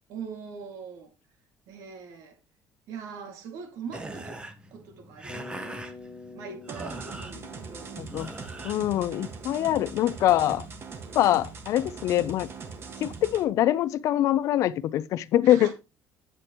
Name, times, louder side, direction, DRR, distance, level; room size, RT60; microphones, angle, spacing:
voice 1, 0.1-1.1 1.7-2.4 2.9-5.8 6.3-8.0 15.4-15.7, right 6 dB, 75° right, 2.3 m, -42 dB
sound 1, 3.9-9.7, right 2 dB, 15° right, 1.1 m, -43 dB
Bass guitar, 5.3-9.4, left 3 dB, 30° left, 1.9 m, -47 dB
sound 2, 6.7-13.4, right 5 dB, 40° right, 1.7 m, -41 dB
voice 2, 8.0-8.3 8.6-10.7 11.1-12.5 13.0-15.7, left 13 dB, 60° left, 0.5 m, -24 dB
9.0 x 7.8 x 3.0 m
cardioid pair, 125°, 6 cm